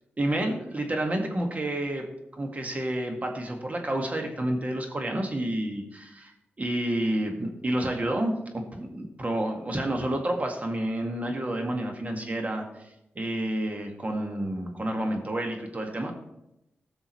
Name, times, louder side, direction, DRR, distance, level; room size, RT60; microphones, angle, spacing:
voice 1, 0.2-6.3 6.6-12.6 13.2-16.1, right 1 dB, 35° right, 3 dB, 1.8 m, -29 dB
15.5 x 6.3 x 3.2 m, 0.88 s
cardioid pair, 60°, 4 cm